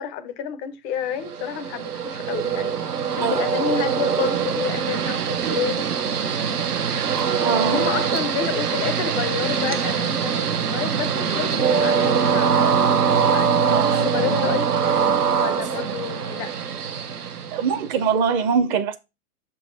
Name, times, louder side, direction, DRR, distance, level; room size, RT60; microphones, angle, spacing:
voice 1, 0.0-2.8 3.2-6.7 7.5-12.6 13.3-14.7 15.4-16.5, left 8 dB, 20° left, 0.4 m, -30 dB
Train, 1.3-18.0, right 6 dB, 90° right, 1.0 m, -23 dB
voice 2, 7.4-7.8 13.7-14.6 17.5-19.0, right 6 dB, 30° right, 0.6 m, -23 dB
6.5 x 3.9 x 4.3 m
hypercardioid pair, 115°, 45 cm